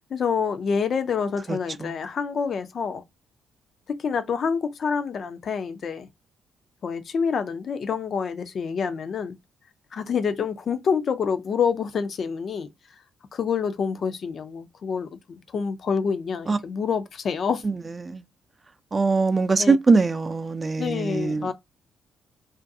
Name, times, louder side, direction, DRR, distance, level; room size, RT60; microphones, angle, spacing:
voice 1, 0.1-3.0 3.9-6.1 6.8-9.4 9.9-12.7 13.3-17.6 19.6-19.8 20.8-21.5, left 6 dB, 55° left, 0.4 m, -27 dB
voice 2, 1.5-2.0 16.5-16.6 17.6-17.7 18.0-18.2 18.9-21.5, right 4 dB, 35° right, 0.4 m, -22 dB
2.4 x 2.2 x 2.6 m
hypercardioid pair, 45°, 0 cm